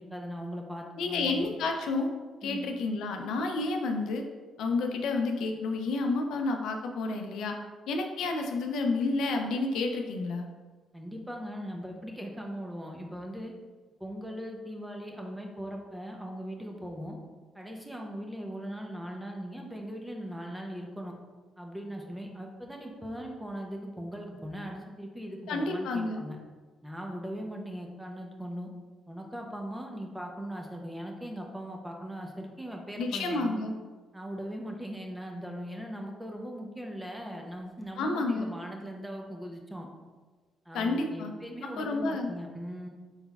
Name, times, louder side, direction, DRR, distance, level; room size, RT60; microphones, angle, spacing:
voice 1, 0.0-1.4 2.4-2.7 10.9-13.5 14.0-17.2 17.5-21.1 21.6-26.4 26.8-28.7 29.1-33.6 34.1-39.9 40.7-42.9, equal, 10° right, 1 dB, 0.6 m, -39 dB
voice 2, 1.0-2.1 2.4-4.2 4.6-7.6 7.9-10.5 25.5-26.2 33.0-33.7 38.0-38.5 40.7-41.3 41.6-42.3, left 3 dB, 80° left, 3 dB, 0.4 m, -30 dB
4.2 x 3.9 x 2.3 m, 1.4 s
cardioid pair, 90°, 0 cm